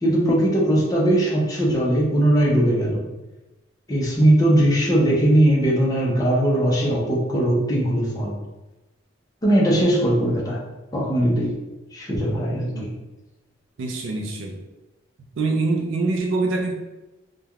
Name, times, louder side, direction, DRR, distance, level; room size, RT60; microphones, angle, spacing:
voice 1, 0.0-3.0 3.9-8.3 9.4-10.6 10.9-11.5 11.9-12.9, right 1 dB, 20° left, -3 dB, 0.5 m, -19 dB
voice 2, 13.8-14.6 15.4-16.7, right 3 dB, 75° right, 2 dB, 0.3 m, -24 dB
3.2 x 2.1 x 2.3 m, 1.0 s
head